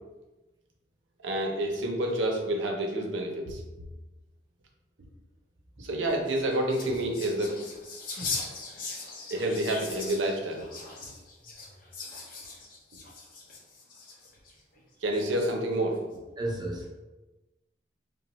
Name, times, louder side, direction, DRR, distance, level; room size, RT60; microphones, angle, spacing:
voice 1, 1.2-3.6 5.8-7.6 8.2-8.3 9.3-10.6 15.0-16.0, right 1 dB, 90° right, 2 dB, 0.5 m, -28 dB
sound 1, 6.1-14.5 15.1-15.7, left 3 dB, 50° left, 0.5 m, -40 dB
voice 2, 16.4-16.9, right 1 dB, 25° right, -2 dB, 0.4 m, -32 dB
3.0 x 2.1 x 2.9 m, 1.1 s
head